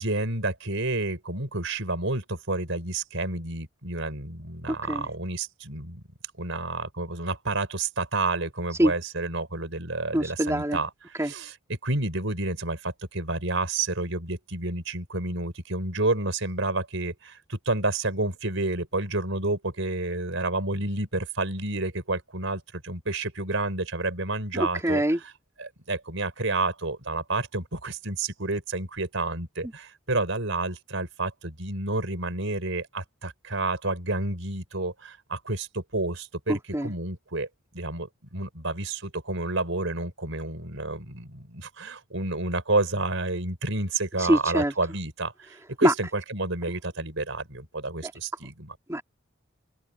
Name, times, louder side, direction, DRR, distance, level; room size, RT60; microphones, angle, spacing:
voice 1, 0.0-6.0 6.4-25.3 25.6-37.5 37.7-48.8, right 2 dB, 70° right, 5.2 m, -30 dB
voice 2, 4.7-5.1 8.8-8.9 10.1-10.8 11.2-11.3 24.5-25.2 36.5-36.9 44.3-44.7 45.8-45.9 48.9-49.0, right 1 dB, 15° right, 3.1 m, -24 dB
open air
head